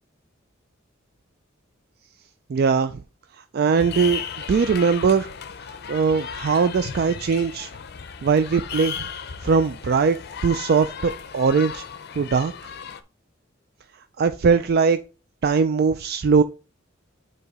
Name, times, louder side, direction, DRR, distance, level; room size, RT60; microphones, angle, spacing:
voice 1, 2.5-3.0 3.5-4.2 4.5-5.3 5.9-7.7 8.2-9.0 9.4-10.2 10.4-11.8 12.2-12.5 14.2-15.0 15.4-16.4, right 5 dB, 50° right, 0.4 m, -20 dB
sound 1, 3.7-13.0, left 7 dB, 55° left, 0.5 m, -35 dB
8.0 x 2.9 x 4.8 m
head